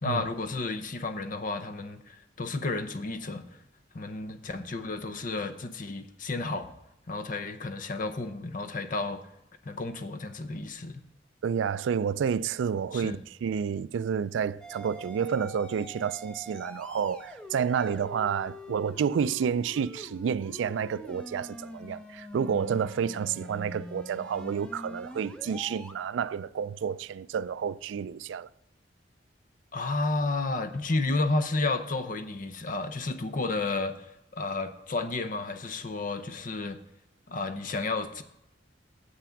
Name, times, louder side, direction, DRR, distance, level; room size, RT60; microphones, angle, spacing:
voice 1, 0.0-3.5 3.9-6.7 7.1-9.2 9.6-11.0 12.9-13.2 29.7-36.8 37.3-38.2, left 3 dB, 45° left, 0.7 m, -32 dB
voice 2, 11.4-28.5, right 7 dB, 85° right, 0.3 m, -30 dB
sound 1, 14.6-25.9, equal, 5° left, 0.7 m, -44 dB
8.1 x 5.9 x 7.0 m
head